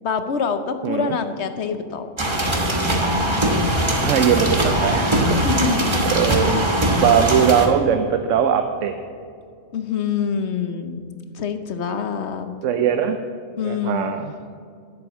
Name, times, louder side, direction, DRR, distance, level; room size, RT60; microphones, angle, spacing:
voice 1, 0.0-2.1 5.4-6.0 9.7-11.0 11.3-12.5 13.6-14.1, left 6 dB, 60° left, 9 dB, 1.0 m, -25 dB
voice 2, 0.8-1.2 4.0-5.8 6.1-9.0 12.6-13.2 13.6-14.3, right 8 dB, 75° right, 7 dB, 1.0 m, -20 dB
sound 1, 2.2-7.7, right 1 dB, 25° right, 1.2 m, -21 dB
11.0 x 7.8 x 7.2 m, 2.3 s
omnidirectional pair, 1.3 m